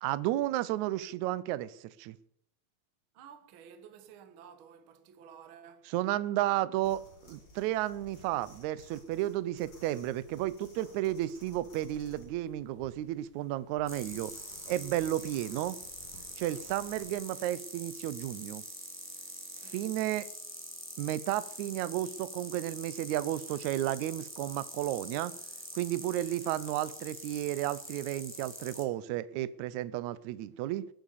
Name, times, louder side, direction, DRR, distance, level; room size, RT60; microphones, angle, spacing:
voice 1, 0.0-2.2 5.9-14.3 14.7-15.8 16.4-18.6 19.7-20.3 21.0-25.3 25.8-30.9, right 14 dB, 85° right, 1.6 m, -33 dB
voice 2, 3.1-5.9 16.7-16.9 19.5-19.9 26.6-26.7, right 8 dB, 65° right, 1.3 m, -53 dB
sound 1, 6.8-17.1, left 2 dB, 60° left, 6.4 m, -55 dB
sound 2, 13.9-28.8, equal, 5° right, 1.2 m, -45 dB
20.5 x 7.6 x 7.1 m
omnidirectional pair, 4.2 m